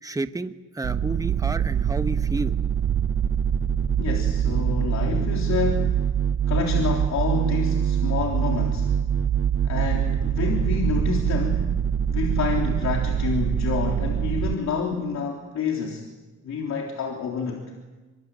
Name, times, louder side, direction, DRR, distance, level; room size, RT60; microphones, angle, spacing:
voice 1, 0.0-2.5, right 2 dB, 10° right, 10 dB, 1.2 m, -30 dB
sound 1, 0.8-14.5, right 8 dB, 45° right, 1.0 m, -24 dB
sound 2, 1.2-2.1 2.8-4.7 5.5-6.2 6.5-7.5 8.1-11.8, right 11 dB, 85° right, 4.1 m, -31 dB
voice 2, 4.0-6.0 6.5-8.9 9.6-11.8 12.1-16.0 16.4-17.6, left 5 dB, 65° left, 1 dB, 3.6 m, -28 dB
25.0 x 22.5 x 8.9 m, 1.2 s
cardioid pair, 90°, 30 cm